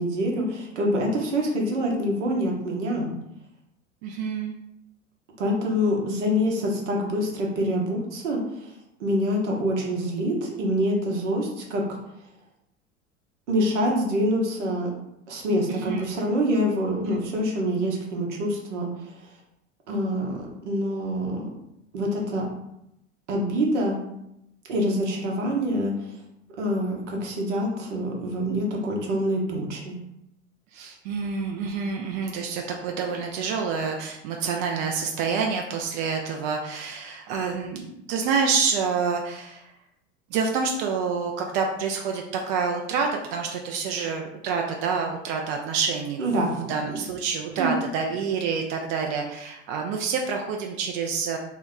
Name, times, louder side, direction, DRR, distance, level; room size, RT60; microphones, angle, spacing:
voice 1, 0.0-3.1 5.4-8.7 9.0-12.0 13.5-14.9 15.3-19.3 19.9-21.5 21.9-22.5 23.3-24.0 24.7-25.9 26.6-30.0 46.2-46.5 46.9-47.0 47.6-47.7, equal, 70° right, 0 dB, 0.9 m, -26 dB
voice 2, 4.0-4.5 15.7-16.0 30.7-39.7 40.3-51.4, right 5 dB, 50° right, 2 dB, 0.5 m, -27 dB
2.8 x 2.2 x 3.5 m, 0.82 s
figure-of-eight pair, 75°, 37 cm